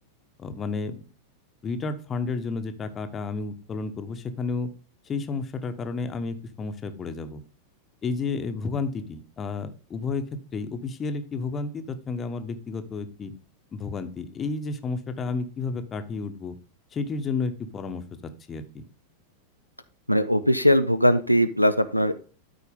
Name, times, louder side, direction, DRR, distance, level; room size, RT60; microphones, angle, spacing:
voice 1, 0.4-1.0 1.6-4.7 5.1-7.4 8.0-13.3 13.7-16.6 16.9-18.8, left 4 dB, 25° left, 9 dB, 1.0 m, -31 dB
voice 2, 20.1-22.2, equal, 90° left, 9 dB, 0.5 m, -20 dB
12.5 x 4.6 x 3.5 m, 0.38 s
figure-of-eight pair, 90°, 0 cm